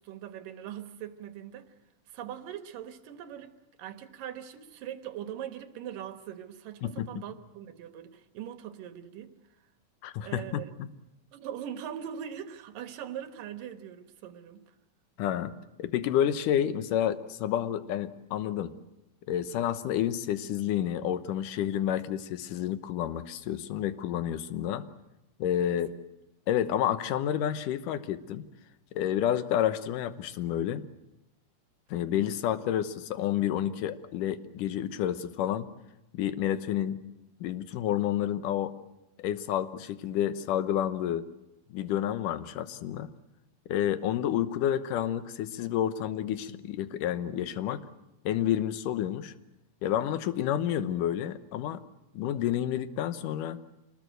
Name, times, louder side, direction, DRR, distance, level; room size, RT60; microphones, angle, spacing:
voice 1, 0.0-1.7 2.1-9.4 10.2-10.7 11.3-14.8 25.7-25.8, right 10 dB, 75° right, 2.9 m, -41 dB
voice 2, 10.0-10.9 15.2-15.5 15.8-18.7 19.3-24.9 25.4-25.9 26.5-28.5 28.9-30.9 31.9-35.7 36.1-37.0 37.4-38.8 39.2-41.3 41.7-43.1 43.7-47.8 48.3-49.3 49.8-51.8 52.1-53.6, left 10 dB, 75° left, 2.5 m, -29 dB
26.0 x 20.0 x 7.9 m
omnidirectional pair, 4.0 m